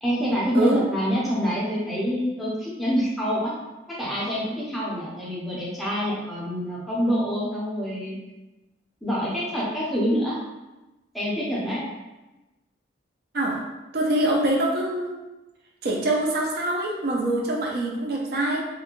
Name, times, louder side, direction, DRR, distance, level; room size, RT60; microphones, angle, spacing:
voice 1, 0.0-3.5 3.9-8.2 9.0-10.4 11.1-11.8, equal, ahead, -7 dB, 0.5 m, -26 dB
voice 2, 13.9-15.2 15.8-18.6, right 1 dB, 55° right, -1 dB, 0.4 m, -24 dB
2.4 x 2.1 x 2.9 m, 1.1 s
head